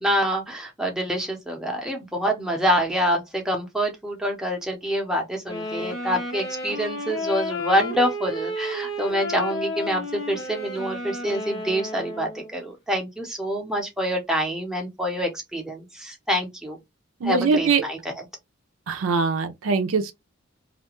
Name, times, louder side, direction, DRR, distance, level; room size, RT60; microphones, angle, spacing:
voice 1, 0.0-16.8 17.2-18.2, equal, 5° right, 0.6 m, -26 dB
sound 1, 5.4-12.5, left 1 dB, 60° left, 0.9 m, -32 dB
voice 2, 17.2-17.8 18.9-20.1, right 4 dB, 80° right, 0.4 m, -22 dB
2.4 x 2.2 x 2.9 m
head